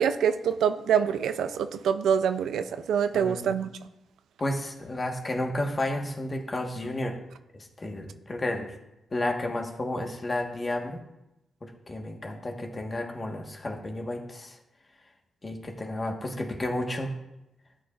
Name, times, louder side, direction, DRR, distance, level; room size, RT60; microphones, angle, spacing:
voice 1, 0.0-3.7, right 8 dB, 85° right, 10 dB, 0.4 m, -25 dB
voice 2, 3.1-3.5 4.4-7.2 7.5-8.7 9.1-11.0 11.6-14.6 15.4-17.1, left 1 dB, 30° left, 2 dB, 1.4 m, -32 dB
13.0 x 8.4 x 2.5 m, 0.91 s
cardioid pair, 85°, 0 cm